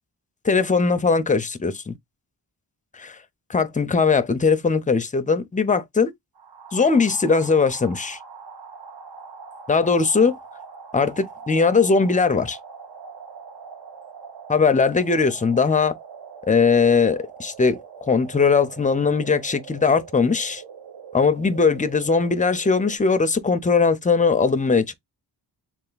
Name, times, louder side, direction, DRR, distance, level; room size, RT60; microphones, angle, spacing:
voice 1, 0.4-1.9 2.9-3.2 3.5-6.1 6.7-8.2 9.7-10.3 10.9-12.6 14.5-16.0 16.5-20.6 21.1-24.9, left 4 dB, 20° left, 0.4 m, -20 dB
sound 1, 6.3-23.0, right 6 dB, 70° right, 0.9 m, -42 dB
3.3 x 2.4 x 3.8 m
wide cardioid pair, 155°, 41 cm